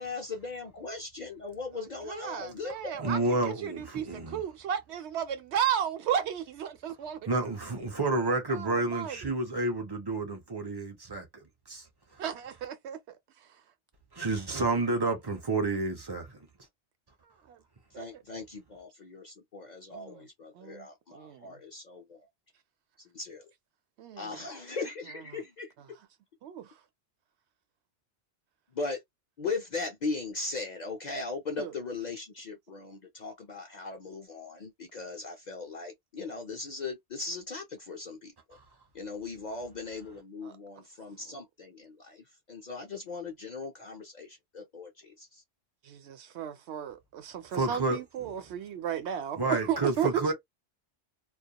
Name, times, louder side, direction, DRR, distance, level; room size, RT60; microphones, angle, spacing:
voice 1, 0.0-3.3 17.9-22.3 23.0-23.5 24.2-25.7 28.7-29.0 29.4-38.6 38.9-45.4, left 3 dB, 55° left, 0.5 m, -39 dB
voice 2, 2.1-3.2 3.4-7.2 8.5-9.3 12.2-13.0 17.5-17.6 17.9-18.0 19.9-20.2 20.6-20.9 21.1-21.6 24.0-24.3 26.4-26.7 31.6-31.7 40.4-40.5 45.9-50.3, right 9 dB, 75° right, 0.8 m, -34 dB
voice 3, 3.0-4.4 7.3-11.3 11.7-11.8 14.2-16.4 47.5-48.0 48.2-48.3 49.4-50.3, right 2 dB, 30° right, 0.5 m, -30 dB
2.3 x 2.1 x 2.8 m
omnidirectional pair, 1.2 m